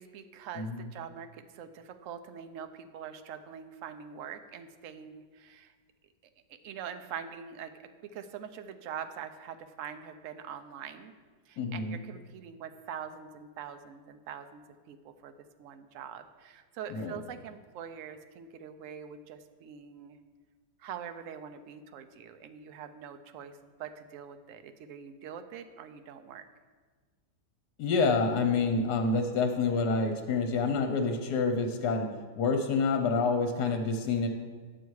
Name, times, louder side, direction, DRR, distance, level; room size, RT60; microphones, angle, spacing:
voice 1, 0.0-5.7 6.6-11.1 11.5-20.2 20.8-26.5, right 8 dB, 65° right, 8 dB, 0.8 m, -44 dB
voice 2, 0.6-0.9 11.6-12.0 16.9-17.1 27.8-32.1 32.4-34.3, left 4 dB, 70° left, 5 dB, 1.4 m, -28 dB
10.5 x 6.9 x 4.7 m, 1.5 s
omnidirectional pair, 1.9 m